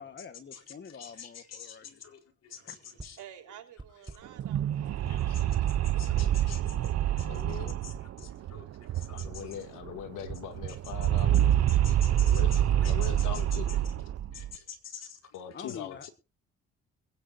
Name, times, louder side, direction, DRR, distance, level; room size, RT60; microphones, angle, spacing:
voice 1, 0.0-2.0 2.7-2.8 7.0-7.1 15.5-16.1, left 6 dB, 35° left, 1.3 m, -46 dB
voice 2, 1.0-2.7 3.0-3.2 5.1-5.5 5.8-6.8 7.2-9.5 11.7-13.4 14.3-15.2 15.5-15.6, left 7 dB, 55° left, 4.4 m, -47 dB
voice 3, 2.5-5.6, right 10 dB, 80° right, 4.1 m, -53 dB
sound 1, 3.0-3.3 3.8-4.4 5.0-5.4 5.9-6.5 7.2-7.4 7.9-8.5 9.2-11.3, right 3 dB, 15° right, 1.1 m, -50 dB
sound 2, 4.3-9.6 9.8-9.9 10.2-14.5, right 11 dB, 60° right, 0.7 m, -27 dB
voice 4, 7.3-7.8 9.1-11.6 12.1-13.8 15.3-16.1, left 9 dB, 90° left, 2.4 m, -41 dB
22.5 x 10.5 x 2.7 m
cardioid pair, 90°, 30 cm